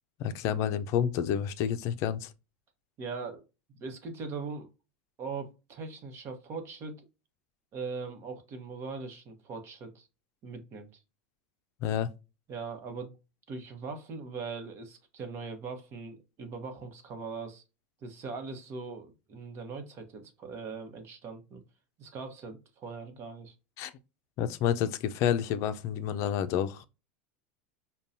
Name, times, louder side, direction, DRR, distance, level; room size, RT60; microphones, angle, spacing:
voice 1, 0.2-2.3 11.8-12.1 23.8-23.9 24.4-26.9, left 9 dB, 50° left, 0.5 m, -29 dB
voice 2, 3.0-3.4 3.7-4.7 5.2-7.0 7.7-10.1 10.4-11.0 12.5-13.1 13.5-17.6 18.0-21.6 22.0-23.5, right 4 dB, 40° right, 1.0 m, -40 dB
5.3 x 2.3 x 2.6 m
supercardioid pair, 120°, 6 cm